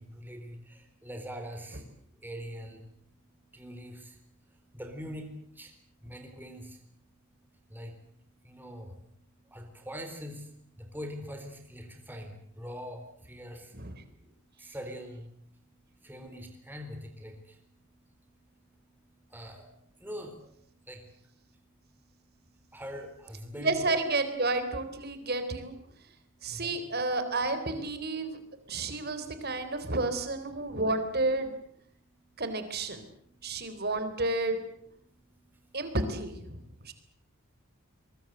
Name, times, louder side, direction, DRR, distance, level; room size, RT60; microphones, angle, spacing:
voice 1, 0.0-1.9 2.2-2.9 3.5-4.2 4.5-5.7 6.0-6.8 7.7-8.0 8.4-9.0 9.4-13.8 14.1-15.6 16.0-17.6 19.3-21.3 22.7-23.8 25.9-26.0 26.5-26.8 28.7-28.8 29.1-29.2 29.5-29.6 33.3-33.8 35.3-35.8 36.5-36.9, equal, 10° right, 4 dB, 4.0 m, -44 dB
voice 2, 23.6-25.7 26.4-28.4 28.7-31.5 32.4-33.0 33.4-34.6 35.7-36.9, right 2 dB, 45° right, 10 dB, 3.8 m, -31 dB
23.5 x 22.5 x 8.0 m, 0.68 s
head